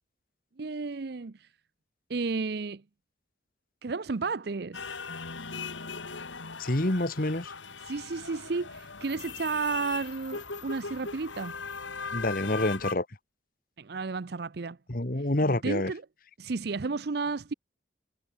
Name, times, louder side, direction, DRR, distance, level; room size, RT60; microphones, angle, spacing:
voice 1, 0.6-1.5 2.1-2.8 3.8-4.9 7.8-11.5 13.8-14.8 15.2-16.0 16.4-17.5, right 4 dB, 55° right, 0.6 m, -32 dB
sound 1, 4.7-12.9, left 5 dB, 85° left, 2.9 m, -39 dB
voice 2, 6.6-7.5 12.1-13.0 14.9-15.9, left 1 dB, 50° left, 1.8 m, -27 dB
head